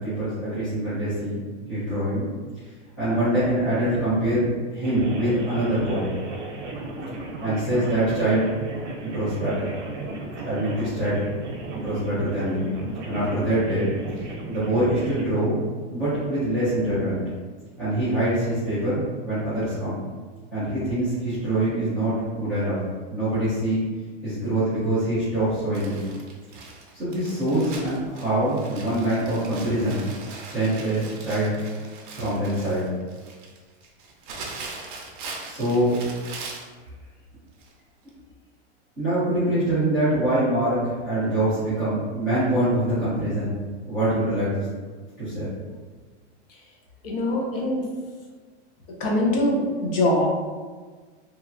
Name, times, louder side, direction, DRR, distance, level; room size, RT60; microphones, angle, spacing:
voice 1, 0.0-2.3 2.6-6.1 7.4-8.5 9.0-9.7 10.4-11.3 11.7-12.7 13.0-15.6 15.9-17.2 17.8-20.1 20.5-22.8 23.1-23.8 24.2-26.0 26.9-30.0 30.5-31.6 32.1-32.9 35.4-36.0 39.0-43.6 43.8-44.7 45.2-45.5, right 1 dB, 5° left, -16 dB, 0.3 m, -24 dB
sound 1, 4.8-15.2, right 2 dB, 85° right, 0.8 m, -35 dB
Crumpling crinkling, 25.7-36.7 37.6-37.7 38.1-38.2, right 3 dB, 45° right, 0.5 m, -40 dB
voice 2, 47.0-47.8 49.0-50.3, left 1 dB, 55° left, -1 dB, 0.7 m, -23 dB
3.0 x 2.3 x 2.5 m, 1.4 s
supercardioid pair, 175°, 35 cm